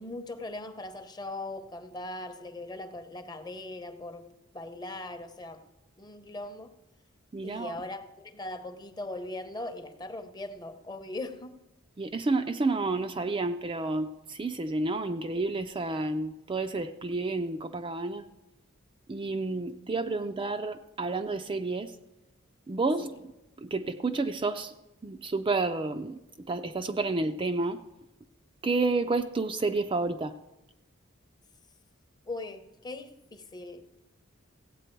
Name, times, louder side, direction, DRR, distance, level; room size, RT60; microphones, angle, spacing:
voice 1, 0.0-4.3 4.5-5.6 6.0-6.7 7.4-11.6 32.3-34.0, left 2 dB, 20° left, 0.8 m, -40 dB
voice 2, 7.3-7.8 12.0-18.2 19.1-21.9 22.7-23.3 23.6-24.7 25.0-26.2 26.5-27.8 28.6-30.3, right 3 dB, 25° right, 0.4 m, -30 dB
16.0 x 8.3 x 4.5 m
head